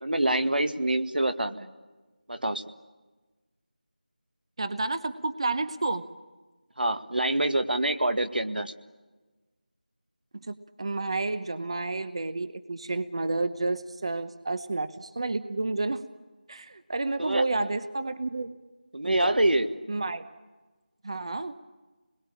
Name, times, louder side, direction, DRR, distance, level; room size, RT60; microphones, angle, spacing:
voice 1, 0.0-1.7 2.3-2.6 6.8-8.7 17.2-17.5 18.9-19.7, right 1 dB, 80° right, 9 dB, 1.9 m, -26 dB
voice 2, 4.6-6.0 10.4-16.0 16.5-18.5 19.0-19.3 19.9-20.3 21.0-21.5, right 3 dB, 35° right, 12 dB, 0.9 m, -30 dB
27.5 x 21.5 x 8.7 m, 1.3 s
figure-of-eight pair, 170°, 5 cm